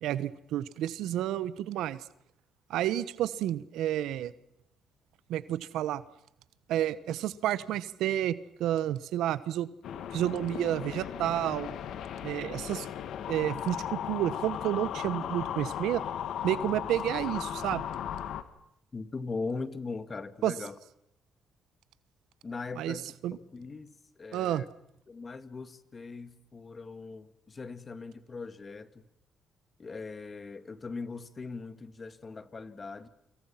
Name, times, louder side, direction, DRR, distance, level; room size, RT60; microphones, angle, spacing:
voice 1, 0.0-2.0 2.7-4.3 5.3-6.0 6.7-9.7 10.1-11.7 12.2-12.9 13.3-16.0 16.4-17.8 20.4-20.5 22.8-23.4 24.3-24.7, right 12 dB, 85° right, 1.1 m, -30 dB
sound 1, 9.8-18.4, left 9 dB, 75° left, 1.8 m, -36 dB
voice 2, 18.9-20.8 22.4-23.9 24.2-24.7 25.1-29.0 29.8-33.1, left 4 dB, 35° left, 2.0 m, -40 dB
28.5 x 26.5 x 5.8 m
cardioid pair, 90°, 0 cm